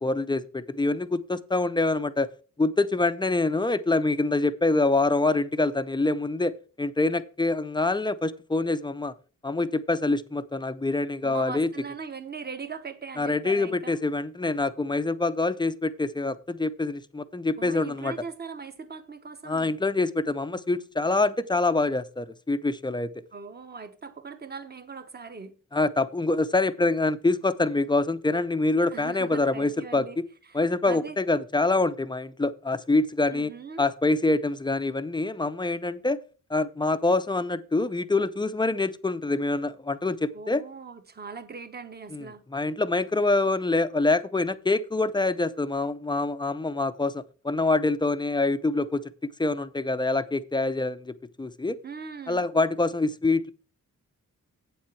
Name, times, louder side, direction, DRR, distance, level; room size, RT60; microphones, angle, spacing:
voice 1, 0.0-2.3 2.6-9.1 9.4-11.7 13.2-18.1 19.5-23.1 25.7-30.2 30.5-33.5 33.8-36.2 36.5-40.6 42.1-42.2 42.5-49.1 49.4-51.8 52.3-53.5, left 2 dB, 15° left, 0.4 m, -25 dB
voice 2, 11.2-14.0 17.6-19.8 23.3-25.5 28.9-30.2 30.5-31.2 33.3-33.9 40.3-42.4 51.8-52.4, right 5 dB, 30° right, 0.9 m, -40 dB
8.4 x 7.3 x 4.5 m
wide cardioid pair, 140°, 32 cm